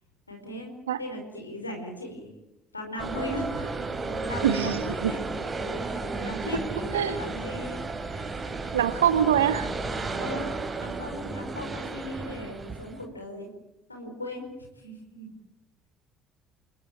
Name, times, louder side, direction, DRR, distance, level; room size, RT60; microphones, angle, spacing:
voice 1, 0.3-2.3 2.7-3.8 4.2-5.2 5.6-7.8 8.1-8.6 10.1-10.5 10.8-13.5 13.9-14.4 14.8-15.3, left 1 dB, 90° left, 3 dB, 4.7 m, -38 dB
sound 1, 3.0-13.0, right 3 dB, 30° right, 5.0 m, -33 dB
voice 2, 4.4-5.1 6.9-7.1 8.7-9.7, right 9 dB, 75° right, 12 dB, 1.6 m, -24 dB
29.5 x 18.0 x 9.1 m, 0.92 s
figure-of-eight pair, 55°, 0 cm